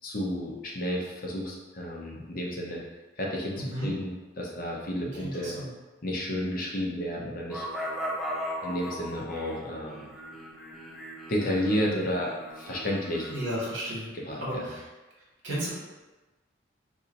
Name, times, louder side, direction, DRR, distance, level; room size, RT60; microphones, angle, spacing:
voice 1, 0.0-2.8 3.2-5.5 6.0-7.6 8.6-10.1 11.3-13.3 14.1-14.6, equal, 45° left, -2 dB, 0.6 m, -31 dB
voice 2, 3.6-3.9 5.2-5.7 13.3-14.1 14.4-14.9 15.4-15.7, right 1 dB, 75° right, -6 dB, 1.3 m, -33 dB
sound 1, 7.5-13.6, equal, ahead, 0.3 m, -38 dB
2.7 x 2.5 x 3.9 m, 1.2 s
head